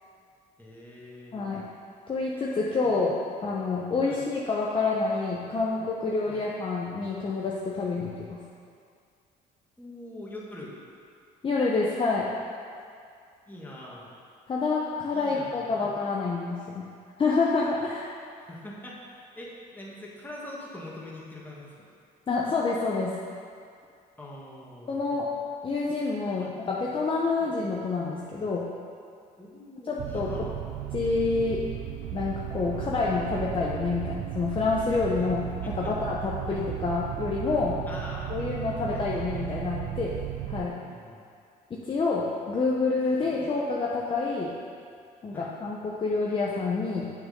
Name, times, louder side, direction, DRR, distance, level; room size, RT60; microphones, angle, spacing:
voice 1, 0.6-1.4 2.8-2.9 4.0-4.2 6.3-6.5 9.8-10.7 13.5-14.1 15.1-15.9 18.4-21.8 24.2-25.2 26.4-26.5 27.4-27.5 29.4-30.5 32.7-33.0 35.6-35.9 36.5-36.6 37.9-39.3 40.8-41.2 45.3-45.5, left 1 dB, 10° left, -5 dB, 2.0 m, -43 dB
voice 2, 1.3-1.7 2.1-8.4 11.4-12.3 14.5-16.9 17.2-18.1 22.3-23.2 24.9-25.3 25.6-28.7 29.8-30.5 30.9-31.7 32.1-37.8 38.3-40.2 40.5-40.8 41.7-44.5 45.2-47.1, left 3 dB, 30° left, -4 dB, 0.9 m, -28 dB
sound 1, 30.0-40.7, right 13 dB, 80° right, 0.5 m, -35 dB
8.9 x 6.3 x 5.3 m, 2.3 s
cardioid pair, 110°, 17 cm